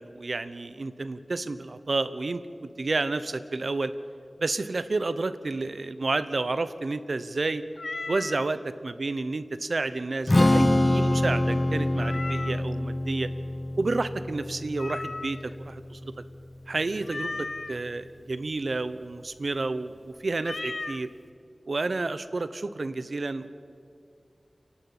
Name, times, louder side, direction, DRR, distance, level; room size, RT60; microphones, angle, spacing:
voice 1, 0.0-3.9 4.4-7.6 8.1-13.3 13.8-16.1 16.7-21.1 21.7-23.5, right 3 dB, 70° right, 13 dB, 1.0 m, -30 dB
Meow, 7.8-8.5 12.0-12.7 14.8-15.6 17.0-17.8 20.4-21.0, left 3 dB, 70° left, 0.6 m, -36 dB
Strum, 10.3-16.5, left 1 dB, 35° left, 1.1 m, -26 dB
28.5 x 11.5 x 8.6 m, 2.3 s
wide cardioid pair, 70°, 0 cm